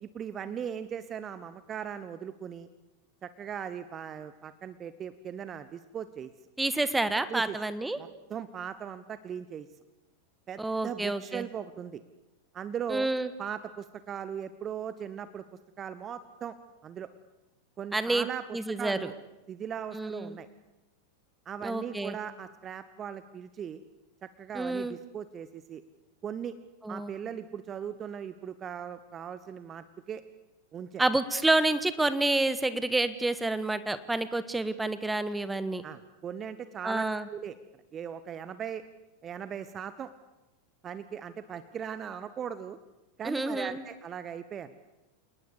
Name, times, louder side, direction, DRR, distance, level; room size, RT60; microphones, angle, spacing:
voice 1, 0.0-2.7 3.2-6.3 7.3-7.6 8.0-9.7 10.5-12.0 12.5-13.1 13.4-15.4 15.8-16.6 16.8-17.1 17.8-19.1 19.5-20.5 21.4-23.8 24.2-25.8 26.2-26.6 26.9-30.2 30.7-31.0 35.8-37.0 37.3-37.6 37.9-38.8 39.2-40.1 40.8-42.8 43.2-44.8, right 8 dB, 25° right, 13 dB, 1.1 m, -39 dB
voice 2, 6.6-8.0 10.6-11.4 12.9-13.3 17.9-18.3 18.5-19.1 19.9-20.4 21.6-22.2 24.5-25.0 26.8-27.1 31.0-35.8 36.8-37.3 43.2-43.8, right 2 dB, 5° right, 13 dB, 1.5 m, -29 dB
29.0 x 19.0 x 8.3 m, 1.0 s
figure-of-eight pair, 90°, 0 cm